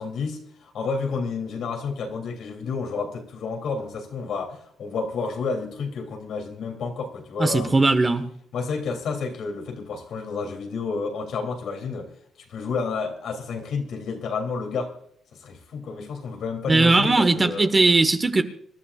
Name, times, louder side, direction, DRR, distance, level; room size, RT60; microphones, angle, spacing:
voice 1, 0.0-7.8 8.5-12.1 12.4-14.9 15.3-17.7, left 4 dB, 70° left, 3 dB, 3.2 m, -30 dB
voice 2, 7.4-8.3 16.7-18.4, right 3 dB, 25° right, 8 dB, 1.4 m, -19 dB
26.5 x 12.0 x 2.5 m, 0.65 s
cardioid pair, 90°, 0 cm